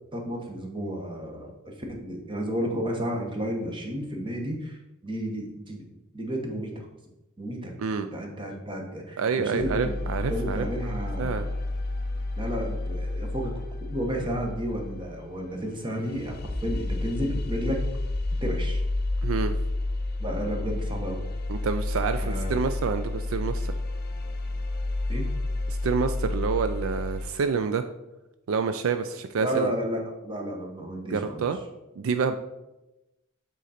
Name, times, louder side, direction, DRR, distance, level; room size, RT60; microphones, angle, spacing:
voice 1, 0.1-5.8 6.1-6.9 7.4-9.9 10.3-11.5 12.4-13.6 13.9-17.8 18.4-18.8 20.2-21.2 22.2-22.5 25.1-25.3 29.4-31.5, equal, 25° right, 1 dB, 1.1 m, -32 dB
voice 2, 9.2-10.7 11.2-11.4 19.2-19.6 21.5-23.7 25.7-27.8 28.5-29.7 31.1-31.6 32.0-32.4, right 5 dB, 65° right, 9 dB, 0.4 m, -28 dB
sound 1, 9.6-27.3, left 2 dB, 45° left, 0.6 m, -30 dB
8.0 x 3.8 x 4.2 m, 0.98 s
head